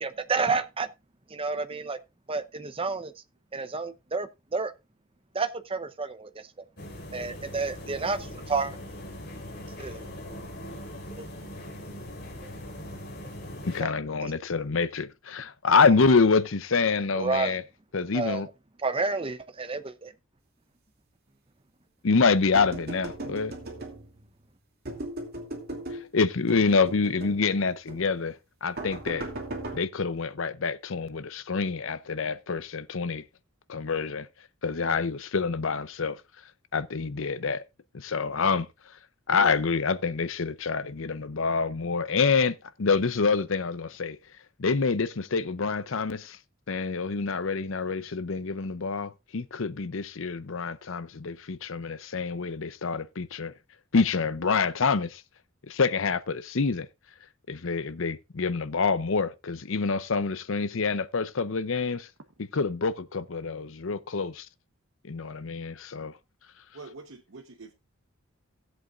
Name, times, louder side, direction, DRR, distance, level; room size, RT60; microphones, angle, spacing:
voice 1, 0.0-0.9 1.3-2.0 2.3-3.1 3.5-4.7 5.3-6.3 7.1-8.7 9.8-10.1 11.2-11.3 13.8-13.9 14.2-14.3 17.1-17.6 18.1-18.5 18.8-20.1, right 4 dB, 25° right, 0.7 m, -30 dB
sound 1, 6.8-13.8, left 1 dB, 50° left, 3.9 m, -41 dB
voice 2, 13.6-17.6 17.9-18.5 22.0-23.5 26.1-28.3 28.6-29.3 29.7-33.2 33.7-34.3 34.6-36.2 36.7-37.6 37.9-38.7 39.3-44.2 44.6-46.4 46.7-53.5 53.9-55.2 55.7-56.9 57.5-62.1 62.5-64.5 65.1-66.1, left 4 dB, 65° left, 0.7 m, -26 dB
sound 2, 22.6-24.3 24.9-26.1 26.5-27.4 27.9-28.1 28.8-29.8, right 2 dB, 50° right, 2.6 m, -37 dB
voice 3, 66.7-67.7, right 3 dB, 65° right, 0.9 m, -42 dB
17.0 x 8.0 x 2.5 m
head